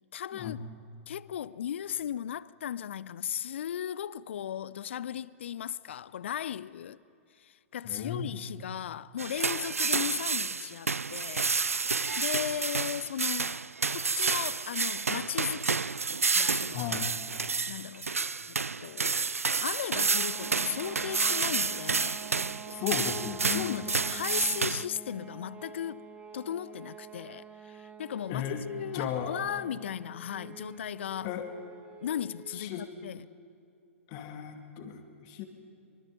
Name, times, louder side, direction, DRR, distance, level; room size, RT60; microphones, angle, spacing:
voice 1, 0.1-0.6 1.1-7.0 7.3-11.5 11.9-15.9 16.3-16.9 17.7-18.1 18.5-19.3 19.6-22.2 23.5-26.0 26.3-31.4 32.0-33.2, left 10 dB, 55° left, 0.5 m, -36 dB
voice 2, 7.8-8.4 16.7-17.1 22.7-23.9 28.3-28.6 28.9-29.3 31.2-31.5 32.5-32.9 34.1-35.5, left 9 dB, 35° left, 2.4 m, -35 dB
sound 1, 9.2-24.9, right 4 dB, 80° right, 0.4 m, -30 dB
sound 2, 19.9-32.7, right 6 dB, 15° right, 1.5 m, -48 dB
24.5 x 24.0 x 5.4 m
figure-of-eight pair, 110°, 8 cm